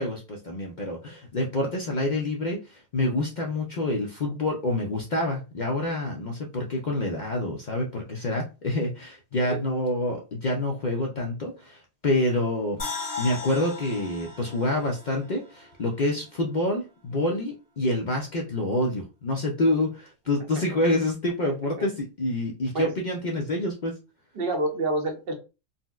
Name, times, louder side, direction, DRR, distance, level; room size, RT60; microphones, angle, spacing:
voice 1, 0.0-12.8 13.2-23.9, left 1 dB, 60° left, 0 dB, 0.4 m, -27 dB
sound 1, 12.8-16.0 16.3-16.4, left 4 dB, 40° left, 1.5 m, -37 dB
voice 2, 21.5-21.9 22.6-22.9 24.3-25.4, right 2 dB, 50° right, 4 dB, 0.8 m, -29 dB
3.9 x 2.1 x 2.3 m, 0.30 s
omnidirectional pair, 1.5 m